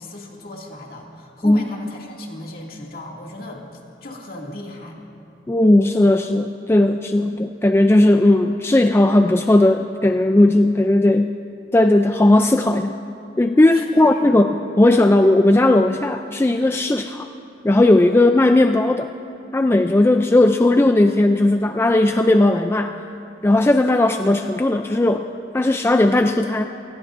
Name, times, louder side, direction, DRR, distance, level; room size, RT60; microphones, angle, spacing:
voice 1, 0.0-3.6 4.0-5.0 13.7-14.5, left 1 dB, 55° left, -1 dB, 2.3 m, -36 dB
voice 2, 5.5-11.3 11.7-13.0 13.4-17.3 17.6-19.1 19.5-23.0 23.4-25.2 25.5-26.7, left 1 dB, 15° left, 6 dB, 0.3 m, -16 dB
28.5 x 19.0 x 2.6 m, 2.7 s
head